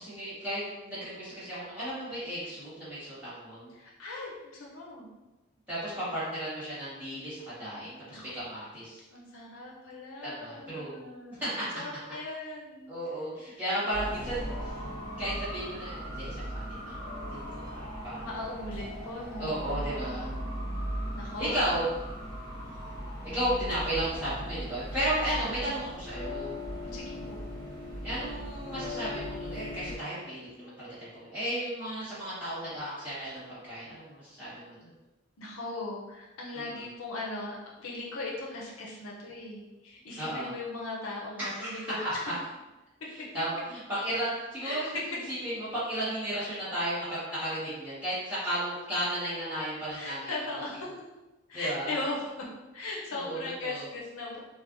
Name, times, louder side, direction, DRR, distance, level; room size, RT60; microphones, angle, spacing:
voice 1, 0.0-3.7 5.7-9.0 10.2-10.9 11.3-11.8 12.9-14.7 15.2-17.0 17.3-18.4 19.4-20.3 21.4-21.8 23.2-26.6 28.0-34.9 36.5-36.8 40.2-40.5 41.4-41.9 43.1-45.0 45.3-50.3 51.5-51.9 53.1-53.8, right 1 dB, 10° right, -11 dB, 1.4 m, -34 dB
voice 2, 3.7-5.1 8.1-8.3 9.1-11.7 12.1-12.9 13.5-13.6 18.2-20.5 21.2-21.8 25.4-25.7 26.8-27.4 35.4-42.3 44.6-45.0 49.9-50.9 51.5-52.5 52.7-54.4, left 2 dB, 80° left, -3 dB, 0.6 m, -39 dB
sound 1, 13.9-30.0, equal, 10° left, 1.2 m, -38 dB
3.3 x 2.2 x 2.5 m, 1.1 s
head